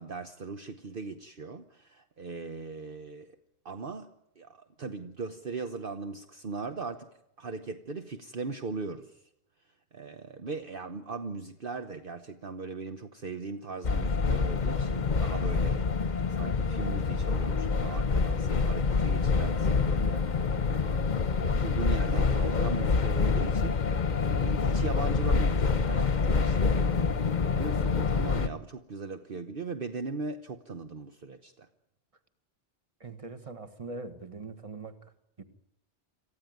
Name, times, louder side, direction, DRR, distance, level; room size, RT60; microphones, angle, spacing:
voice 1, 0.0-3.4 3.6-9.3 9.6-15.8 16.3-20.6 21.4-26.8 27.5-31.7, right 4 dB, 50° right, 7 dB, 1.2 m, -39 dB
sound 1, 13.8-28.5, left 4 dB, 45° left, 1.1 m, -26 dB
voice 2, 33.0-35.0 35.4-35.5, right 3 dB, 30° right, 10 dB, 1.7 m, -41 dB
27.5 x 15.0 x 9.5 m, 0.78 s
omnidirectional pair, 1.2 m